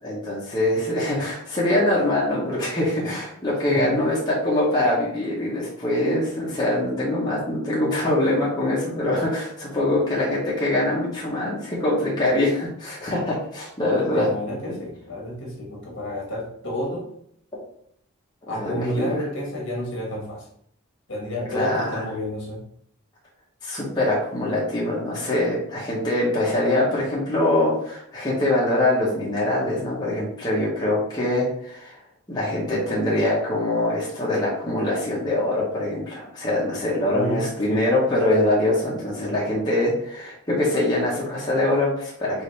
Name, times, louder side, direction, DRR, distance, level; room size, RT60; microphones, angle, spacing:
voice 1, 0.0-14.3 18.5-19.1 21.5-22.0 23.6-32.0 32.3-42.4, left 1 dB, 20° left, -6 dB, 0.8 m, -23 dB
voice 2, 3.7-4.0 14.1-17.1 18.5-20.5 21.1-22.6 37.1-38.0, equal, 55° left, -3 dB, 1.4 m, -30 dB
4.8 x 2.6 x 3.2 m, 0.67 s
head